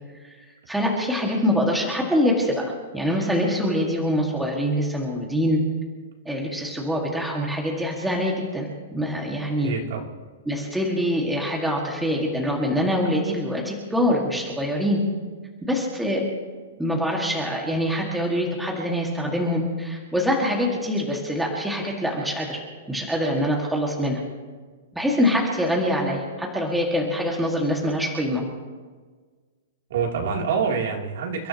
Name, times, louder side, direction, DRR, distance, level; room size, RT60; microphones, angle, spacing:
voice 1, 0.7-5.6 6.3-9.7 10.5-15.0 15.6-16.2 16.8-22.6 22.9-24.2 24.9-28.4, equal, ahead, -2 dB, 1.9 m, -24 dB
voice 2, 9.6-10.0 29.9-31.5, right 6 dB, 55° right, 0 dB, 3.0 m, -26 dB
29.5 x 13.5 x 2.9 m, 1.5 s
hypercardioid pair, 175°, 0 cm